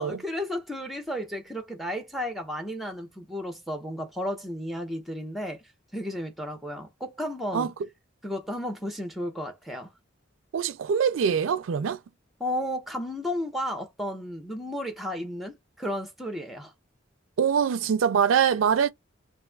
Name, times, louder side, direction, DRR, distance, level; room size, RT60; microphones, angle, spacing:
voice 1, 0.0-5.6 5.9-7.7 8.2-9.9 12.4-16.7, equal, ahead, 0.8 m, -33 dB
voice 2, 10.5-12.0 17.4-18.9, right 7 dB, 85° right, 0.4 m, -23 dB
2.6 x 2.4 x 3.3 m
head